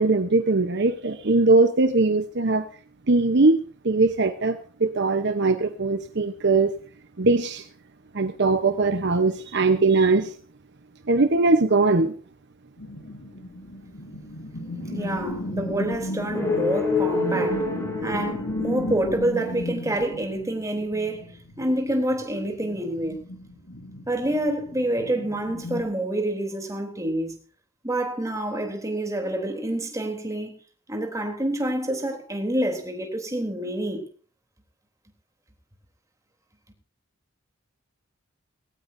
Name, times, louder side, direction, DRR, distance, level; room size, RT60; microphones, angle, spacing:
voice 1, 0.0-2.7 3.1-6.8 7.2-7.7 8.1-10.3 11.1-12.1, right 3 dB, 60° right, 1.0 m, -21 dB
sound 1, 12.8-25.8, left 1 dB, 75° left, 3.7 m, -35 dB
voice 2, 14.9-17.7 18.0-23.2 24.1-27.3 27.8-30.5 30.9-34.0, right 1 dB, 15° right, 3.4 m, -27 dB
sound 2, 16.3-19.2, left 3 dB, 15° left, 4.6 m, -27 dB
19.0 x 17.5 x 2.7 m
head